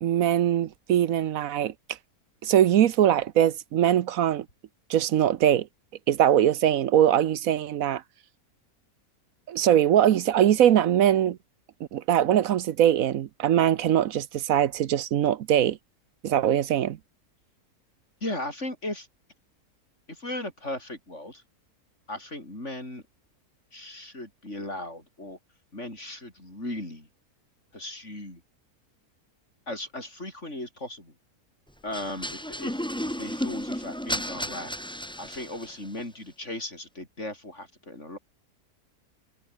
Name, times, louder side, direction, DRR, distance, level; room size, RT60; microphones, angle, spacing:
voice 1, 0.0-1.7 2.4-4.5 4.9-5.7 6.1-8.0 9.5-11.4 11.9-15.8 16.2-17.0, right 10 dB, 65° right, 1.1 m, -22 dB
voice 2, 18.2-19.1 20.1-21.4 22.1-23.0 23.7-25.4 25.7-27.1 27.7-28.4 29.7-31.1 31.8-34.7 35.2-38.2, left 1 dB, 50° left, 8.3 m, -37 dB
sound 1, 31.9-35.9, equal, 5° left, 2.4 m, -33 dB
omnidirectional pair, 1.6 m